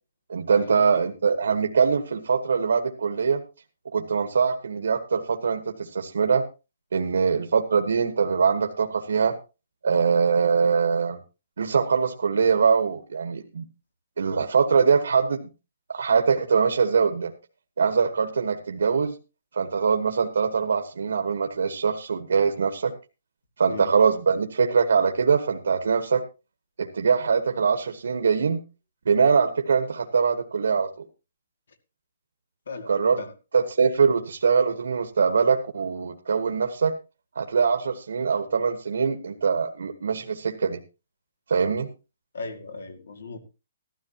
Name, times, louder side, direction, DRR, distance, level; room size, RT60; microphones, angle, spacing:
voice 1, 0.3-3.4 3.9-6.4 6.9-9.3 9.8-11.2 11.6-13.6 14.2-15.4 15.9-17.3 17.8-19.2 19.5-22.9 23.6-26.2 26.8-28.6 29.0-30.9 32.9-33.2 33.5-36.9 37.3-40.8 41.5-41.9, right 5 dB, 85° right, 6 dB, 1.3 m, -23 dB
voice 2, 32.7-33.3 42.3-43.4, left 4 dB, 80° left, 8 dB, 2.3 m, -37 dB
15.0 x 13.0 x 2.9 m, 0.29 s
hypercardioid pair, 175°, 0 cm